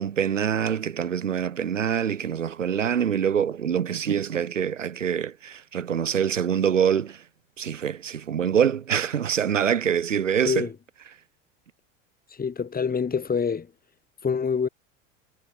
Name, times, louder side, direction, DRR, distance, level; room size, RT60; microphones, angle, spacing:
voice 1, 0.0-7.2 7.6-10.7, right 8 dB, 90° right, 1.5 m, -25 dB
voice 2, 12.4-13.7 14.2-14.7, left 6 dB, 25° left, 5.3 m, -25 dB
hypercardioid pair, 80°, 37 cm